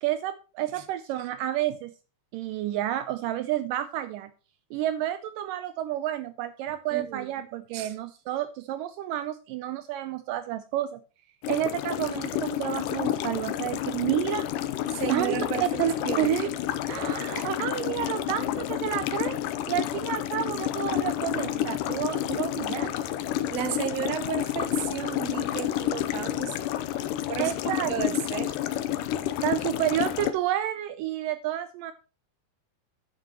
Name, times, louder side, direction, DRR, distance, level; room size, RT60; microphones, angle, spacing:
voice 1, 0.0-1.9 2.3-4.3 4.7-11.0 11.5-14.5 15.1-15.4 15.8-16.5 16.9-19.4 19.7-22.9 27.4-27.9 29.4-31.9, right 12 dB, 90° right, 1.9 m, -30 dB
voice 2, 6.9-7.4 7.7-7.9 14.9-15.7 16.0-16.3 23.5-26.6 27.3-28.6, right 9 dB, 70° right, 1.6 m, -33 dB
sound 1, 11.4-30.3, left 12 dB, 80° left, 1.9 m, -30 dB
11.0 x 9.5 x 3.0 m
omnidirectional pair, 4.5 m